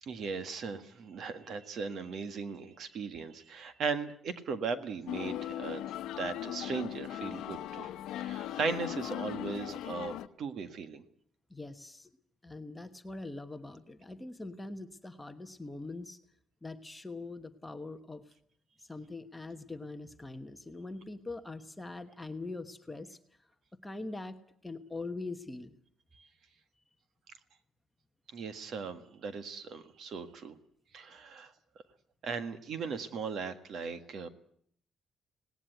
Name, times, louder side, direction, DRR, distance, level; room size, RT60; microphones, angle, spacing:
voice 1, 0.0-5.9 6.2-7.9 8.2-11.0 26.2-26.3 28.3-30.6 30.9-31.5 32.2-34.3, right 5 dB, 50° right, 11 dB, 1.7 m, -38 dB
sound 1, 5.1-10.3, left 13 dB, 85° left, 0.8 m, -38 dB
voice 2, 11.5-12.1 12.4-16.2 16.6-18.2 18.8-23.2 23.8-24.4 24.6-25.8, left 2 dB, 10° left, 7 dB, 1.1 m, -42 dB
18.5 x 18.5 x 9.3 m, 0.64 s
cardioid pair, 170°, 0 cm